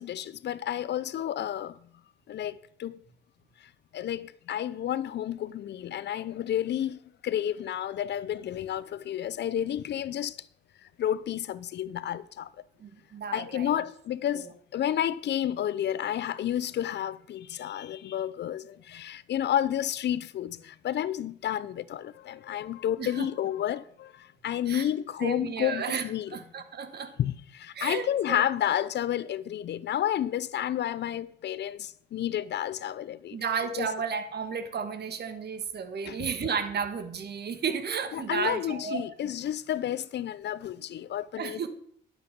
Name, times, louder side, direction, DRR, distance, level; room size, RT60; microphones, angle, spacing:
voice 1, 0.0-1.8 2.3-3.0 3.9-10.4 11.0-12.5 13.3-26.4 27.2-33.4 33.8-33.9 36.0-36.3 38.1-41.7, left 11 dB, 60° left, 0.6 m, -31 dB
voice 2, 12.8-13.8 14.3-14.5 23.0-23.3 24.7-24.9 25.2-26.0 26.3-27.1 27.7-28.4 33.3-39.3 41.4-41.7, right 6 dB, 55° right, 1.6 m, -33 dB
11.5 x 8.0 x 5.2 m
cardioid pair, 90°, 20 cm